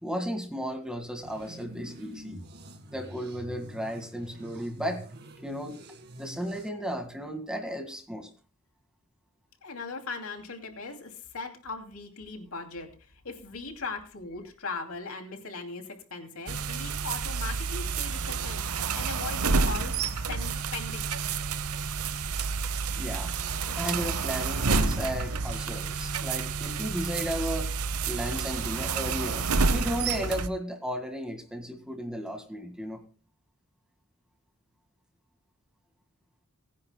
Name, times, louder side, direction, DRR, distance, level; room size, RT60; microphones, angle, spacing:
voice 1, 0.0-2.4 2.9-5.0 5.4-5.8 6.2-8.3 22.9-23.3 23.8-27.7 28.1-33.0, equal, 5° right, 5 dB, 1.9 m, -34 dB
sound 1, 1.2-6.7, right 1 dB, 50° right, 2.0 m, -46 dB
voice 2, 9.6-21.0, left 4 dB, 75° left, 5 dB, 2.7 m, -39 dB
sound 2, 16.5-30.5, right 4 dB, 85° right, 0.9 m, -29 dB
26.0 x 10.5 x 2.2 m, 0.38 s
head